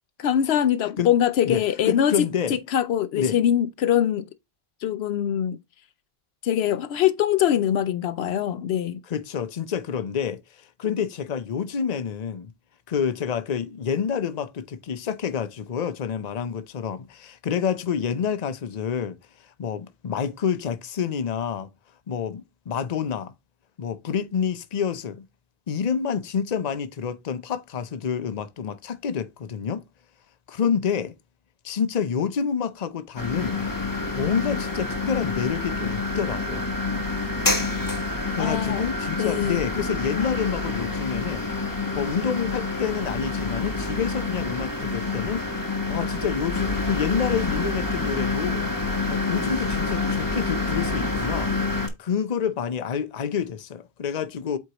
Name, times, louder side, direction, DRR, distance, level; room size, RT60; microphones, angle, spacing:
voice 1, 0.2-2.1 2.5-4.3 4.8-5.6 6.4-9.0 38.4-38.9 39.2-39.6, left 10 dB, 80° left, 0.8 m, -23 dB
voice 2, 1.4-2.6 3.1-3.4 9.1-12.5 12.9-19.2 19.6-21.7 22.1-23.3 23.8-25.2 25.7-29.8 30.5-31.1 31.6-33.6 34.1-36.6 38.3-41.5 41.9-45.5 45.9-48.7 49.1-51.5 52.0-54.6, left 7 dB, 45° left, 0.7 m, -28 dB
sound 1, 33.2-51.9, left 3 dB, 20° left, 1.2 m, -27 dB
8.0 x 4.5 x 2.9 m
omnidirectional pair, 1.1 m